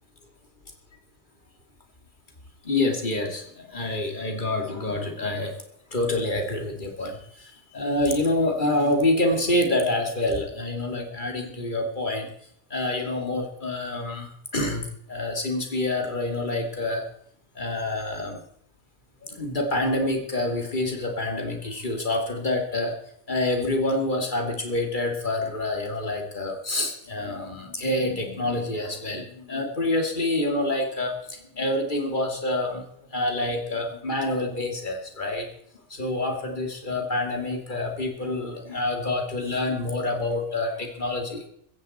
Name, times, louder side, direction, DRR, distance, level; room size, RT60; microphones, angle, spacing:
voice 1, 2.6-3.4 3.7-5.5 5.9-7.2 7.7-12.3 12.7-14.8 15.1-17.0 17.6-18.4 19.3-22.9 23.3-31.1 31.6-32.8 33.1-35.5 35.9-41.4, left 2 dB, 40° left, 3 dB, 2.7 m, -27 dB
15.5 x 15.0 x 4.3 m, 0.70 s
omnidirectional pair, 1.2 m